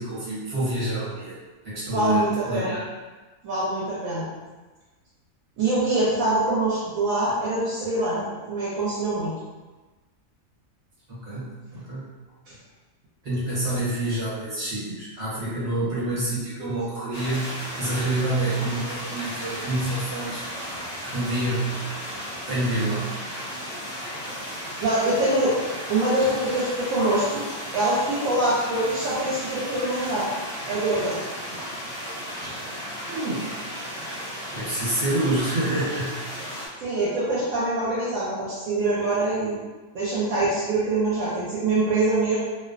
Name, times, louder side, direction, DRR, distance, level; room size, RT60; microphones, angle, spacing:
voice 1, 0.0-1.4 1.6-2.9 11.1-12.1 13.2-20.4 21.1-21.9 22.5-23.2 33.1-33.6 34.5-36.2, right 1 dB, 60° right, -8 dB, 1.3 m, -27 dB
voice 2, 1.9-2.8 3.4-4.3 5.6-9.3 24.8-25.6 25.9-27.4 27.7-30.3 30.7-31.2 32.4-32.5 36.8-39.6 39.9-42.4, right 2 dB, 75° right, -9 dB, 1.0 m, -24 dB
sound 1, 17.1-36.7, equal, 40° left, 0.6 m, -35 dB
2.6 x 2.1 x 2.4 m, 1.2 s
omnidirectional pair, 1.4 m